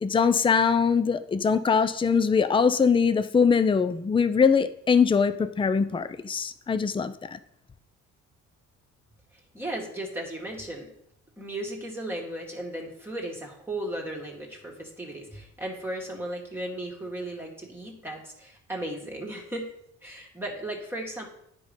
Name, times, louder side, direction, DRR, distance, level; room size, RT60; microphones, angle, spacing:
voice 1, 0.0-7.4, left 6 dB, 15° left, 12 dB, 0.5 m, -22 dB
voice 2, 9.5-10.9 11.4-19.7 20.0-21.3, right 1 dB, 5° right, -2 dB, 1.8 m, -35 dB
9.5 x 5.3 x 5.3 m, 0.73 s
cardioid pair, 90°, 30 cm